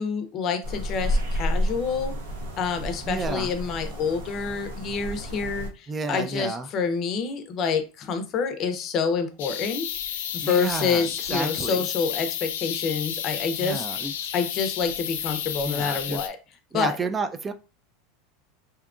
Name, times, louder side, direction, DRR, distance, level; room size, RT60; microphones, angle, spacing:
voice 1, 0.0-2.1 2.6-9.9 10.3-13.9 14.3-16.4 16.7-17.0, left 5 dB, 40° left, 7 dB, 0.6 m, -27 dB
sound 1, 0.6-5.7, equal, 85° right, 0.7 m, -30 dB
voice 2, 3.1-3.5 5.9-6.7 10.4-11.9 13.6-14.1 15.6-16.2 16.7-17.5, right 4 dB, 20° right, 10 dB, 0.3 m, -31 dB
sound 2, 9.4-16.3, left 9 dB, 85° left, 0.4 m, -31 dB
2.7 x 2.2 x 2.4 m, 0.31 s
supercardioid pair, 125°, 0 cm